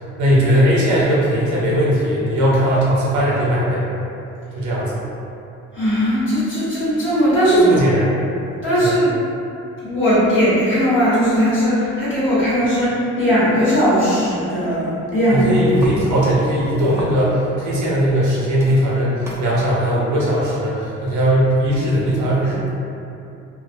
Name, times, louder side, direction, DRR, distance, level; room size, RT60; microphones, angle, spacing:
voice 1, 0.2-3.8 4.5-5.0 7.5-8.1 8.8-9.0 15.3-22.7, equal, 75° right, -6 dB, 0.7 m, -18 dB
voice 2, 5.7-7.7 8.6-9.1 9.8-15.4, equal, 40° left, -11 dB, 1.2 m, -18 dB
sound 1, 15.3-17.6 18.1-18.3 18.5-19.5 20.5-20.6, equal, 10° right, 0.4 m, -33 dB
2.3 x 2.1 x 2.7 m, 2.7 s
cardioid pair, 90°, 30 cm